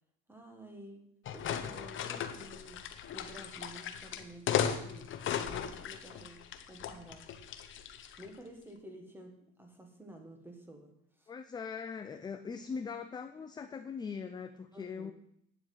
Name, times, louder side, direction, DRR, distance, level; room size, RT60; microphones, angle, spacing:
voice 1, 0.3-2.9 3.1-6.4 6.7-7.3 8.2-11.3 14.7-15.1, right 1 dB, 5° right, 4 dB, 1.6 m, -51 dB
sound 1, 1.3-8.3, left 9 dB, 40° left, 1.0 m, -37 dB
voice 2, 11.3-15.1, left 5 dB, 15° left, 8 dB, 0.4 m, -41 dB
9.7 x 7.8 x 8.6 m, 0.71 s
cardioid pair, 180°, 32 cm